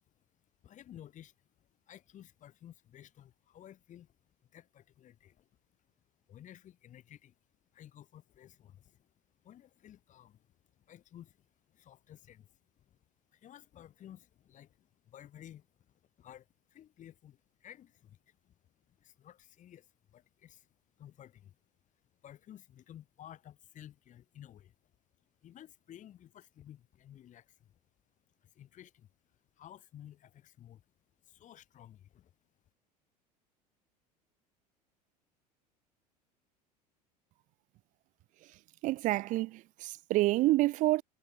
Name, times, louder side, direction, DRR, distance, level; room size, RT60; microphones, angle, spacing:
voice 1, 0.0-4.2 4.5-5.5 6.3-7.4 7.7-13.0 13.3-20.7 21.0-21.6 22.2-24.9 25.4-27.8 28.4-29.1 29.6-30.8 31.2-32.3, left 11 dB, 35° left, 5.1 m, -55 dB
voice 2, 38.8-41.0, right 18 dB, 40° right, 0.6 m, -28 dB
figure-of-eight pair, 70°, 21 cm